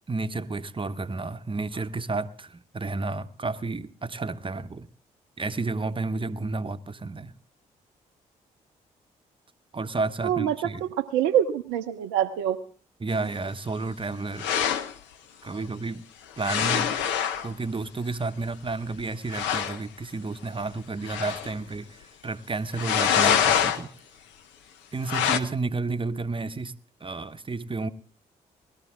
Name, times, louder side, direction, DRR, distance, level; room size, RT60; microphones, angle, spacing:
voice 1, 0.1-4.9 5.4-7.3 9.7-10.8 13.0-14.5 15.4-16.0 16.4-17.0 17.4-23.9 24.9-26.7 27.0-27.9, right 3 dB, 25° right, 0.9 m, -31 dB
voice 2, 10.2-12.6, right 10 dB, 75° right, 0.6 m, -25 dB
sound 1, 14.4-14.9 16.4-17.5 18.7-18.8 19.0-19.1 19.3-19.8 21.0-21.6 22.8-23.8 25.1-25.4, left 8 dB, 70° left, 0.8 m, -24 dB
19.0 x 13.0 x 3.7 m
hypercardioid pair, 40°, 19 cm